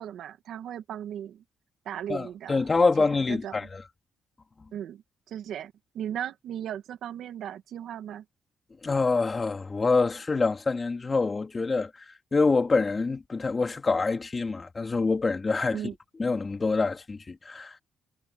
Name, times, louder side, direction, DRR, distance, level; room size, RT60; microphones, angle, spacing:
voice 1, 0.0-1.4 1.9-2.7 3.0-3.7 4.7-5.0 5.3-8.2 15.7-15.9, right 10 dB, 75° right, 2.1 m, -37 dB
voice 2, 2.1-3.8 8.8-12.1 12.3-15.8 16.2-17.8, left 4 dB, 30° left, 3.6 m, -26 dB
cardioid pair, 90°, 0 cm